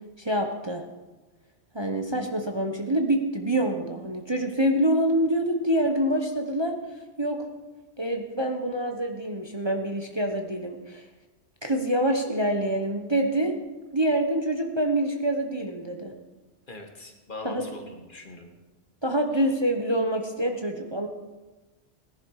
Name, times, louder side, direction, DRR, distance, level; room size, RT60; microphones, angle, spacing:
voice 1, 0.2-0.8 1.7-6.7 7.2-7.4 8.0-11.0 11.6-13.5 13.9-16.1 17.4-17.7 19.0-21.1, right 1 dB, 25° right, 3 dB, 1.0 m, -26 dB
voice 2, 16.7-18.5 19.3-19.5, left 2 dB, 45° left, 4 dB, 1.7 m, -41 dB
17.5 x 11.5 x 4.8 m, 1.2 s
omnidirectional pair, 1.2 m